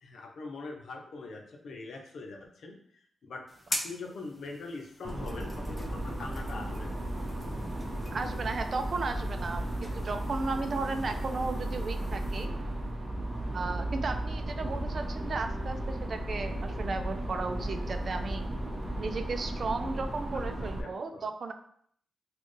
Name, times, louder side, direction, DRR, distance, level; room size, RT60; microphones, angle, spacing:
voice 1, 0.0-2.8 3.2-3.4 3.7-6.9 15.3-15.4 20.6-21.3, left 3 dB, 75° left, 2 dB, 0.7 m, -43 dB
sound 1, 3.5-12.5, left 1 dB, 10° left, 0.7 m, -44 dB
sound 2, 5.0-20.8, right 1 dB, 25° right, 0.8 m, -35 dB
voice 2, 8.1-12.5 13.5-18.5 19.0-21.5, right 3 dB, 60° right, 7 dB, 0.5 m, -35 dB
4.2 x 2.4 x 3.2 m, 0.64 s
cardioid pair, 65°, 0 cm